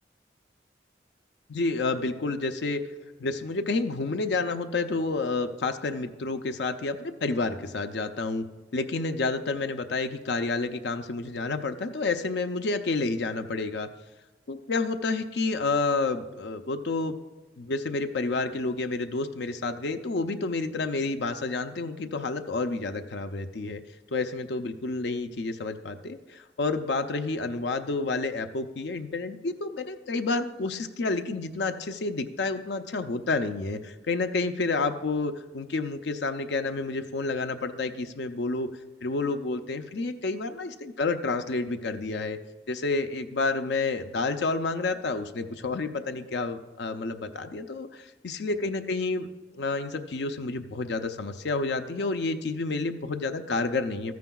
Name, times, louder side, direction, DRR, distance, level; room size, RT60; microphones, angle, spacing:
voice 1, 1.5-2.8 3.2-8.4 8.7-13.9 14.5-17.2 17.6-23.8 24.1-38.7 39.0-42.4 42.7-49.3 49.5-54.1, left 3 dB, 75° left, 8 dB, 0.6 m, -29 dB
13.5 x 9.3 x 2.3 m, 1.2 s
head